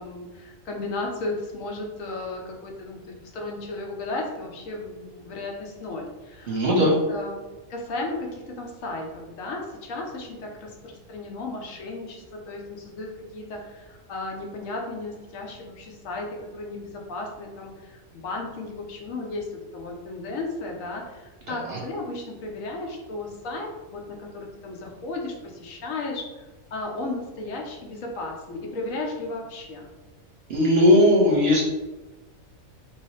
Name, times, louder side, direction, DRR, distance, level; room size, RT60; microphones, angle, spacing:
voice 1, 0.0-7.4 7.7-29.9, left 2 dB, 75° left, 1 dB, 1.0 m, -35 dB
voice 2, 6.5-6.9 21.5-21.8 30.5-31.6, left 1 dB, 55° right, -3 dB, 0.8 m, -18 dB
3.1 x 2.6 x 3.1 m, 1.1 s
omnidirectional pair, 1.4 m